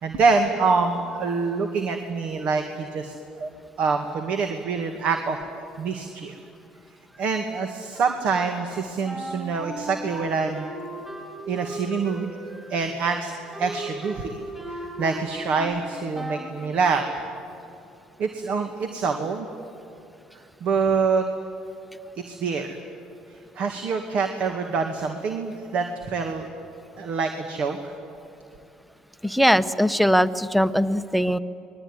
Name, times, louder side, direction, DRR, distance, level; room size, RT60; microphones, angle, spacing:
voice 1, 0.0-3.5 3.8-6.4 7.2-10.7 11.5-12.3 12.7-13.3 13.6-14.3 14.7-17.0 18.2-19.5 20.6-21.3 22.3-22.8 23.6-26.5 27.0-27.9, right 4 dB, 60° right, 5 dB, 2.0 m, -25 dB
Wind instrument woodwind instrument, 9.0-15.8 16.1-16.6, right 1 dB, 15° right, 6.1 m, -37 dB
voice 2, 29.2-31.4, equal, ahead, 14 dB, 1.0 m, -20 dB
26.0 x 21.5 x 9.8 m, 2.6 s
supercardioid pair, 85°, 2 cm